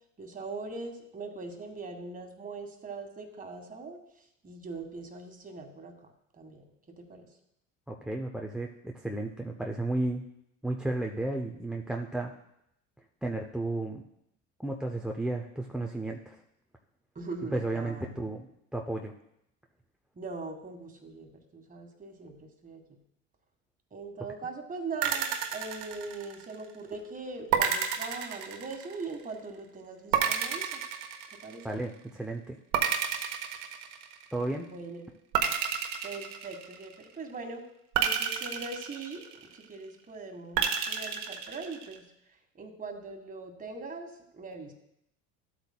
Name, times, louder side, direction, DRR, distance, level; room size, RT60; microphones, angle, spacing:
voice 1, 0.2-4.0 4.4-5.9 6.3-6.6 7.0-7.3 17.1-18.2 20.1-23.0 23.9-30.9 31.3-31.7 34.6-35.1 36.0-37.6 38.0-42.1 42.5-44.7, right 3 dB, 20° right, 5 dB, 1.5 m, -41 dB
voice 2, 7.9-10.2 10.6-12.3 13.2-14.0 14.6-16.4 17.5-18.5 18.7-19.1 31.6-32.6 34.3-34.7, right 2 dB, ahead, 2 dB, 0.5 m, -33 dB
sound 1, 25.0-26.6 27.5-29.1 30.1-31.8 32.7-34.3 35.3-37.0 37.9-39.6 40.6-42.0, right 8 dB, 70° right, 1.2 m, -30 dB
12.5 x 8.1 x 2.2 m, 0.79 s
supercardioid pair, 95°, 38 cm